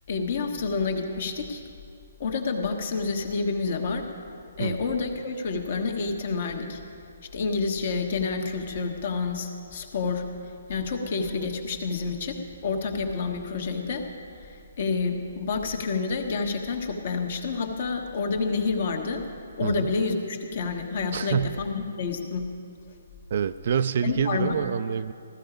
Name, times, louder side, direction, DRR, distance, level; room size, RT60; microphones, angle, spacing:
voice 1, 0.1-1.6 2.2-4.1 4.6-6.8 7.3-10.2 10.7-14.1 14.4-19.3 19.6-22.5 24.0-24.5, left 4 dB, 45° left, 4 dB, 1.3 m, -29 dB
voice 2, 21.1-21.6 23.3-25.1, right 7 dB, 45° right, 13 dB, 0.3 m, -26 dB
15.0 x 13.0 x 5.0 m, 2.4 s
hypercardioid pair, 170°, 0 cm